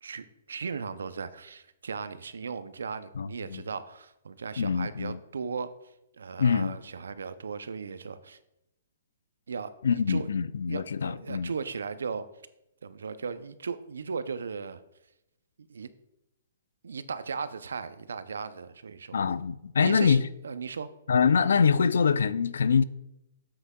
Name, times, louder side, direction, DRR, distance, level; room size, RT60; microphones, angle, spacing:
voice 1, 0.0-5.7 6.2-8.4 9.5-10.3 10.7-12.3 12.8-14.8 15.6-15.9 16.8-19.2 19.8-20.2 20.4-20.9, right 5 dB, 85° right, 0.5 m, -37 dB
voice 2, 3.2-3.6 4.6-5.2 6.4-6.8 9.8-11.5 19.1-20.2 21.1-22.8, left 6 dB, 80° left, 0.4 m, -24 dB
7.9 x 7.7 x 2.3 m
hypercardioid pair, 140°, 0 cm